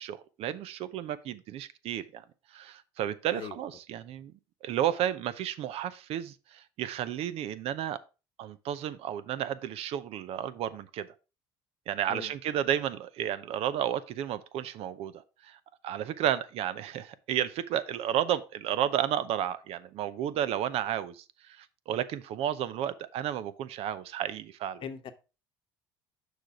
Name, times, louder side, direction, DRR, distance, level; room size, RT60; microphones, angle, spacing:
voice 1, 0.0-2.2 2.5-4.3 4.6-8.0 8.4-11.1 11.9-24.8, right 10 dB, 60° right, 0.7 m, -32 dB
voice 2, 24.8-25.1, left 7 dB, 50° left, 1.0 m, -39 dB
6.5 x 5.1 x 4.5 m
hypercardioid pair, 75°, 11 cm